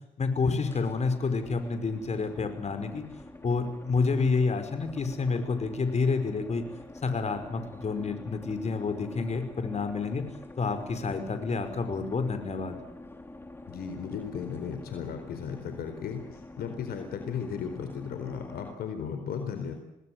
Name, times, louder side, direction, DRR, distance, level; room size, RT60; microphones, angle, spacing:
voice 1, 0.2-3.0 3.4-6.6 7.0-10.2 10.6-12.8, left 4 dB, 40° left, 8 dB, 5.3 m, -29 dB
sound 1, 0.6-18.8, left 2 dB, 15° left, 4.9 m, -47 dB
voice 2, 13.7-19.7, left 7 dB, 70° left, 7 dB, 4.1 m, -35 dB
27.0 x 19.5 x 8.0 m, 0.88 s
supercardioid pair, 60°, 17 cm